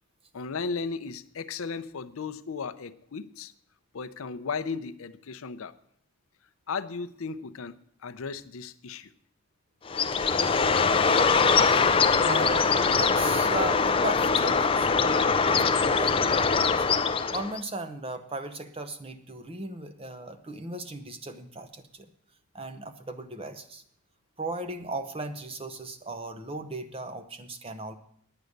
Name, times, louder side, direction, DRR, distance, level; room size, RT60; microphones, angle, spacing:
voice 1, 0.3-3.5 3.9-5.7 6.7-9.1, left 5 dB, 70° left, 12 dB, 0.6 m, -35 dB
Bird, 9.9-17.6, left 5 dB, 25° left, 0.4 m, -23 dB
voice 2, 12.2-14.9 15.4-16.9 17.3-22.1 22.5-23.8 24.4-27.9, right 2 dB, 25° right, 10 dB, 0.7 m, -37 dB
9.7 x 9.1 x 6.5 m, 0.66 s
head